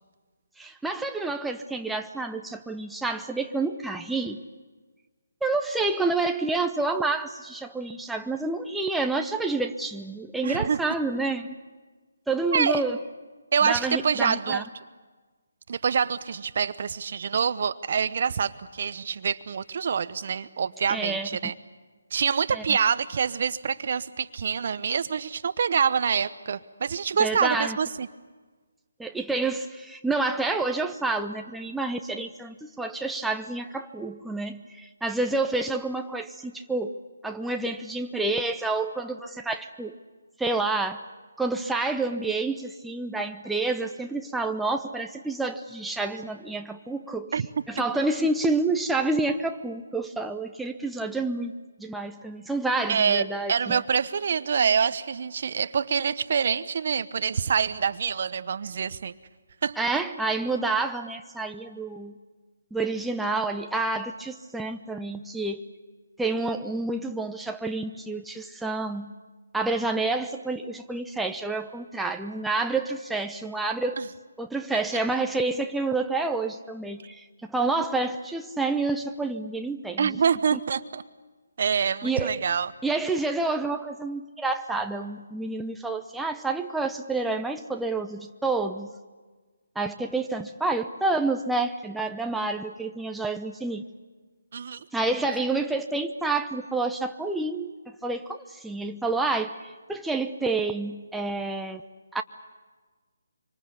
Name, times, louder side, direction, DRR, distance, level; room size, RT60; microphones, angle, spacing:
voice 1, 0.6-4.4 5.4-11.6 12.3-13.0 13.6-14.6 20.9-21.5 22.5-22.8 27.2-27.8 29.0-37.0 37.2-40.0 40.4-41.0 41.4-47.3 47.7-51.5 51.8-53.8 59.8-62.1 62.7-65.6 66.2-69.1 69.5-74.0 74.4-80.2 80.5-80.6 82.0-82.4 82.8-88.9 89.8-93.8 94.9-101.8 102.1-102.2, right 3 dB, 5° right, 4 dB, 0.8 m, -29 dB
voice 2, 10.4-10.8 12.5-12.8 13.5-14.6 15.7-21.5 22.1-28.1 47.3-47.5 52.9-53.2 53.5-59.1 59.6-59.8 74.0-74.1 80.0-81.0 81.6-82.7 94.5-94.8, right 6 dB, 50° right, 14 dB, 1.0 m, -26 dB
25.0 x 25.0 x 8.3 m, 1.4 s
figure-of-eight pair, 150°, 0 cm